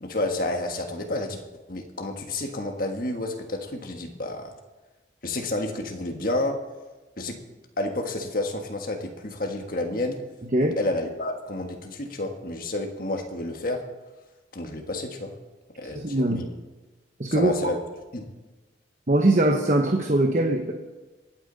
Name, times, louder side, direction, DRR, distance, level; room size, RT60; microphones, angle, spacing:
voice 1, 0.0-1.4 1.7-4.5 5.2-6.6 7.2-7.4 7.8-10.2 10.8-13.8 14.5-15.3 15.8-16.5 17.3-17.8 18.1-18.3, left 2 dB, 50° left, 3 dB, 1.6 m, -30 dB
voice 2, 16.0-16.5 17.2-17.5 19.1-20.7, right 1 dB, 40° right, 3 dB, 0.9 m, -21 dB
26.0 x 8.8 x 4.0 m, 1.2 s
head